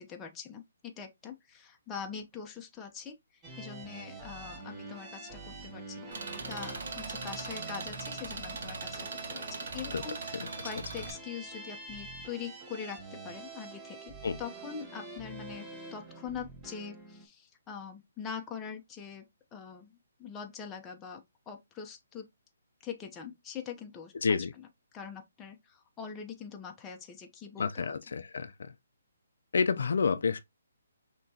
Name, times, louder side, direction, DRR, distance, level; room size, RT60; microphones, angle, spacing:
voice 1, 0.0-3.2 3.6-22.3 22.8-24.4 24.9-27.9, left 7 dB, 15° left, 0.8 m, -43 dB
sound 1, 3.4-17.2, right 3 dB, 15° right, 1.0 m, -45 dB
Engine, 6.1-11.1, right 3 dB, 65° right, 1.2 m, -40 dB
voice 2, 24.2-24.5 27.6-28.7 29.5-30.4, left 5 dB, 70° left, 0.5 m, -29 dB
5.9 x 3.0 x 2.8 m
hypercardioid pair, 160°, 0 cm